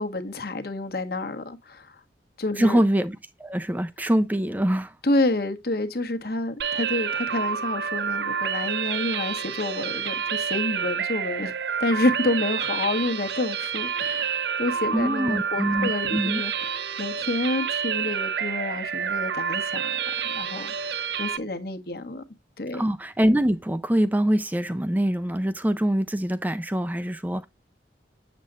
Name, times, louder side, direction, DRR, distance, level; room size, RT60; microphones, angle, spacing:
voice 1, 0.0-1.9 2.4-2.8 5.0-11.5 11.8-20.0 20.2-22.2 22.6-22.9, left 2 dB, 55° left, 1.2 m, -29 dB
voice 2, 2.6-5.0 14.9-16.4 22.7-27.5, right 1 dB, 10° right, 0.4 m, -24 dB
sound 1, 6.6-21.4, right 7 dB, 70° right, 0.6 m, -28 dB
7.7 x 7.3 x 2.4 m
head